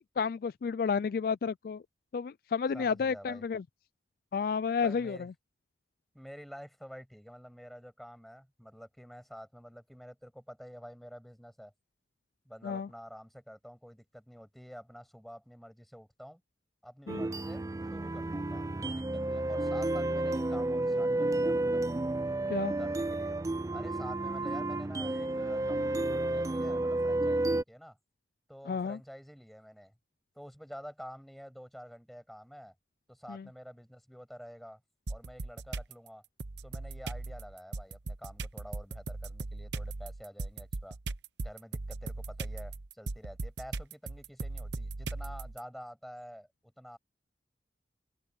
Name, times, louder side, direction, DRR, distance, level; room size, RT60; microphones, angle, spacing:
voice 1, 0.0-1.8 2.1-3.6 4.3-5.3 12.6-12.9 17.1-17.3 22.5-22.7 28.7-29.0 33.3-33.5, left 6 dB, 55° left, 0.3 m, -31 dB
voice 2, 2.7-3.4 4.8-5.3 6.1-11.7 12.5-16.4 16.8-17.6 17.9-21.8 22.8-23.4 23.7-28.0 28.5-29.9 30.3-32.7 33.1-34.8 35.1-36.2 36.6-41.0 41.4-47.0, equal, ahead, 7.3 m, -49 dB
sound 1, 17.1-27.6, right 2 dB, 20° right, 0.4 m, -31 dB
sound 2, 35.1-35.9 36.4-45.6, right 3 dB, 85° right, 0.9 m, -38 dB
open air
head